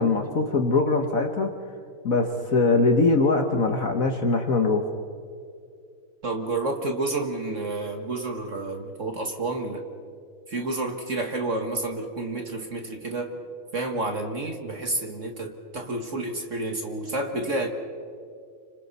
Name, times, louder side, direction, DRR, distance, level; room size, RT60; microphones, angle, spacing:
voice 1, 0.0-1.5 2.0-4.9, left 3 dB, 45° left, 4 dB, 1.4 m, -22 dB
voice 2, 6.2-9.8 10.5-13.4 13.7-17.7, right 2 dB, 40° right, 4 dB, 1.6 m, -30 dB
30.0 x 26.0 x 4.2 m, 2.3 s
omnidirectional pair, 2.4 m